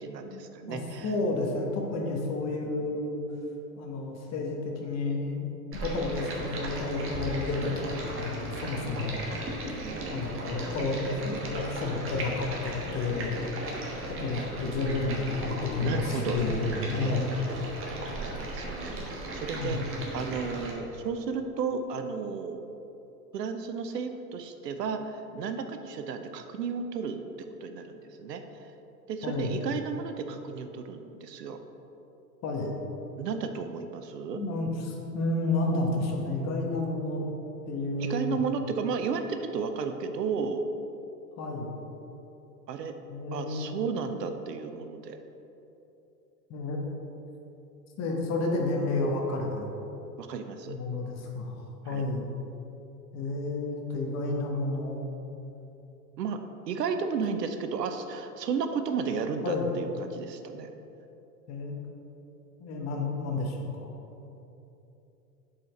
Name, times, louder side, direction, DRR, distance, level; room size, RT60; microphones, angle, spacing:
voice 1, 0.0-1.1 2.6-2.7 9.8-10.2 15.8-16.4 17.0-17.4 18.5-22.6 23.3-27.2 27.6-28.7 29.1-31.6 33.2-34.4 38.0-40.7 42.7-43.0 43.3-45.2 50.2-50.8 51.8-52.1 56.2-56.4 56.7-60.7, right 5 dB, 80° right, 7 dB, 0.6 m, -33 dB
voice 2, 0.7-3.2 3.8-5.5 5.7-9.3 10.1-13.4 14.1-17.4 19.5-19.9 29.2-29.6 32.4-32.7 34.4-37.2 37.7-38.4 41.4-41.8 43.1-43.8 46.5-46.9 48.0-49.7 50.7-52.3 53.1-55.0 59.4-59.7 61.5-61.8 62.6-63.9, left 3 dB, 35° left, 1 dB, 1.1 m, -31 dB
Stream, 5.7-20.7, right 1 dB, 25° right, 1.2 m, -36 dB
7.6 x 4.4 x 3.8 m, 3.0 s
hypercardioid pair, 90°, 48 cm